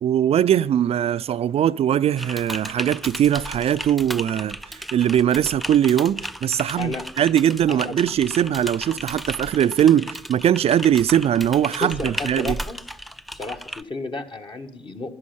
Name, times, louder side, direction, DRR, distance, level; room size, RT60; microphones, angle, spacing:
voice 1, 0.0-12.6, right 10 dB, 50° right, 0.4 m, -21 dB
Typing, 2.2-13.8, equal, ahead, 0.5 m, -35 dB
voice 2, 11.8-12.8 13.3-15.1, left 3 dB, 40° left, 1.6 m, -32 dB
11.0 x 11.0 x 5.7 m
hypercardioid pair, 45°, 13 cm